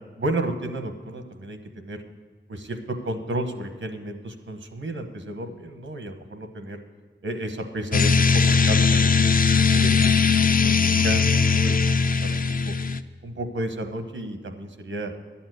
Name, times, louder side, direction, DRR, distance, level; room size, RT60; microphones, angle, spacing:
voice 1, 0.2-2.0 2.5-6.8 7.2-12.7 13.2-15.1, right 1 dB, 90° right, 7 dB, 1.1 m, -32 dB
sound 1, 7.9-13.0, left 5 dB, 45° left, 0.4 m, -19 dB
11.5 x 7.1 x 7.9 m, 1.4 s
wide cardioid pair, 75°, 20 cm